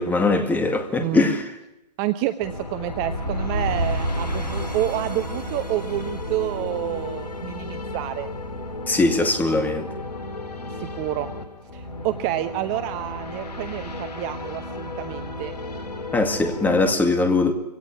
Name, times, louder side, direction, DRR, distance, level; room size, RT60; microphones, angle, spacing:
voice 1, 0.0-1.4 8.9-9.9 16.1-17.5, left 3 dB, 10° left, 2.1 m, -21 dB
voice 2, 1.0-1.3 2.0-8.3 10.7-11.3 11.7-15.5, right 14 dB, 25° right, 0.9 m, -29 dB
sound 1, 2.4-16.9, left 2 dB, 70° left, 2.5 m, -34 dB
sound 2, 2.7-7.8, equal, 80° right, 4.2 m, -30 dB
24.0 x 17.5 x 9.9 m
figure-of-eight pair, 120°, 21 cm